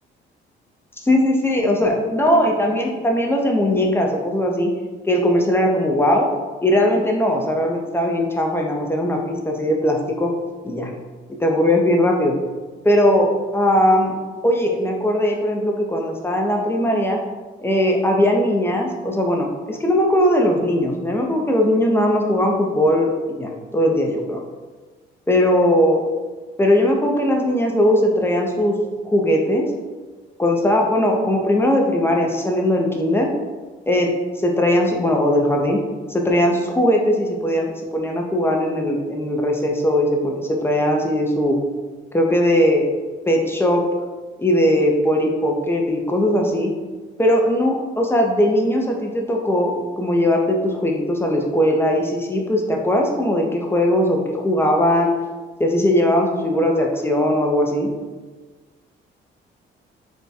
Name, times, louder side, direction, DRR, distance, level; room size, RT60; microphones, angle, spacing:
voice 1, 1.0-4.7 5.1-6.3 6.6-10.3 10.6-10.9 11.4-12.3 12.8-14.2 14.4-17.2 17.6-24.4 25.3-26.0 26.6-28.8 29.0-29.7 30.4-33.3 33.9-34.1 34.4-35.8 36.1-41.6 42.1-42.9 43.3-43.8 44.4-46.7 47.2-55.1 55.6-57.9, left 1 dB, 10° left, 1 dB, 0.6 m, -19 dB
3.5 x 2.2 x 4.1 m, 1.3 s
cardioid pair, 90°, 20 cm